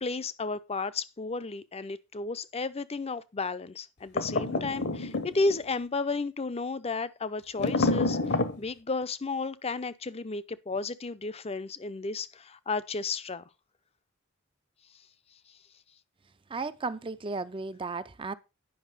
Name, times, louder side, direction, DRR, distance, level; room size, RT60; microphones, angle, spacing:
voice 1, 0.0-13.4, left 3 dB, 30° left, 0.6 m, -33 dB
sound 1, 4.2-5.6 7.6-8.6, left 3 dB, 55° left, 1.0 m, -28 dB
voice 2, 16.5-18.3, right 4 dB, 25° right, 0.5 m, -34 dB
10.0 x 5.8 x 5.5 m
head